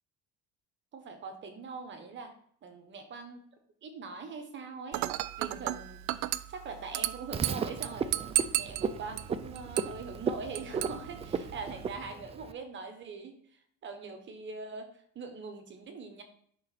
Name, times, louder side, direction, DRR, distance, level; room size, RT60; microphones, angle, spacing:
voice 1, 0.9-2.3 2.6-3.4 3.8-16.2, right 4 dB, 40° right, 6 dB, 1.3 m, -43 dB
Dishes pots and pans / Glass, 4.9-11.9, right 15 dB, 75° right, 0.5 m, -35 dB
Frog, 7.3-12.5, right 6 dB, 20° right, 0.4 m, -36 dB
11.0 x 3.9 x 4.3 m, 0.63 s
cardioid pair, 135°, 30 cm